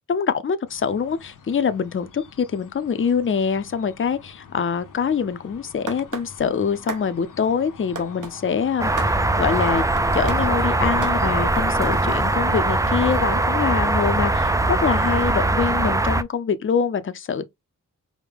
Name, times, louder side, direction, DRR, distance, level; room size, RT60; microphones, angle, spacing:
voice 1, 0.1-8.9 9.4-9.8 10.1-17.5, left 6 dB, 40° left, 0.5 m, -24 dB
sound 1, 0.7-15.9, left 5 dB, 70° left, 0.8 m, -42 dB
sound 2, 5.9-6.3 6.9-7.1 8.0-8.4 9.0-9.2 10.0-10.4 11.0-11.2, right 4 dB, 70° right, 1.2 m, -32 dB
sound 3, 8.8-16.2, right 2 dB, 10° right, 0.3 m, -21 dB
5.0 x 2.1 x 3.5 m
wide cardioid pair, 80°, 32 cm